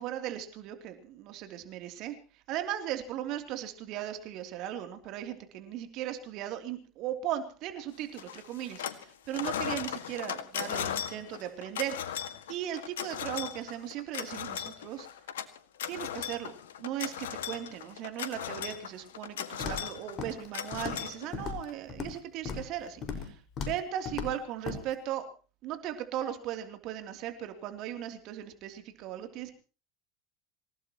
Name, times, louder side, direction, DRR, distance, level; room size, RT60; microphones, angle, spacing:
voice 1, 0.0-12.2 12.5-15.1 15.9-16.5 16.8-25.3 25.6-29.5, right 11 dB, 55° right, 6 dB, 3.1 m, -37 dB
sound 1, 8.2-9.0 9.3-21.7, left 9 dB, 80° left, 1.8 m, -37 dB
Walk footsteps, 19.6-19.9 20.2-20.5 20.7-21.1 21.3-22.2 22.4-22.7 23.0-23.3 23.6-23.8 24.0-24.3 24.6-24.8, left 5 dB, 45° left, 5.3 m, -36 dB
26.5 x 17.5 x 3.0 m, 0.37 s
hypercardioid pair, 80°, 0 cm